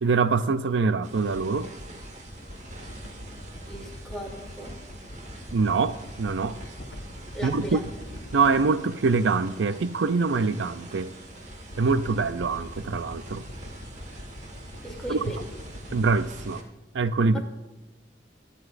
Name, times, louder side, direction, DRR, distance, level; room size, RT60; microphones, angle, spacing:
voice 1, 0.0-1.7 5.5-6.6 7.4-7.8 8.3-11.1 11.8-13.4 15.1-15.2 15.9-16.6 16.9-17.4, right 4 dB, 85° right, 13 dB, 0.5 m, -24 dB
sound 1, 1.0-16.6, right 1 dB, 40° right, 1.6 m, -46 dB
sound 2, 1.1-8.9 11.2-16.5, equal, 85° left, 1.4 m, -43 dB
voice 2, 3.7-4.8 7.3-7.8 14.8-15.4 17.3-17.4, equal, 5° left, -2 dB, 2.9 m, -36 dB
23.5 x 9.9 x 2.6 m, 1.1 s
head